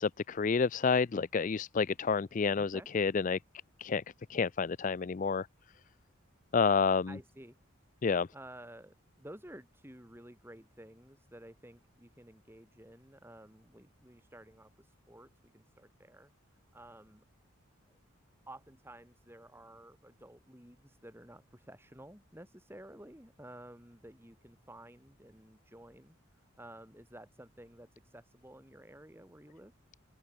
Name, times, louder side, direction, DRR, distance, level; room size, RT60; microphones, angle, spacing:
voice 1, 0.0-3.4 3.8-4.0 4.3-5.5 6.5-7.1 8.0-8.3, left 5 dB, 35° left, 0.4 m, -29 dB
voice 2, 2.5-2.9 7.1-7.6 8.3-17.2 17.9-18.0 18.5-29.7, right 1 dB, 10° right, 3.1 m, -53 dB
open air
head